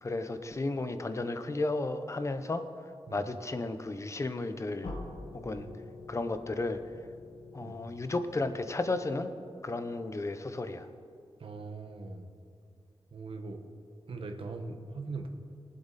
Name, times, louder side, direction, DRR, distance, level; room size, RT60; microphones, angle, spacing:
voice 1, 0.0-2.6 3.1-4.9 5.3-5.7 6.1-6.8 7.5-9.3 9.6-10.9, left 2 dB, 30° left, 9 dB, 0.7 m, -33 dB
sound 1, 4.8-9.6, left 2 dB, 70° left, 1.7 m, -46 dB
voice 2, 11.4-12.3 13.1-13.6 14.1-15.4, right 3 dB, 60° right, 5 dB, 1.2 m, -40 dB
22.5 x 7.7 x 4.1 m, 2.3 s
wide cardioid pair, 155°, 10 cm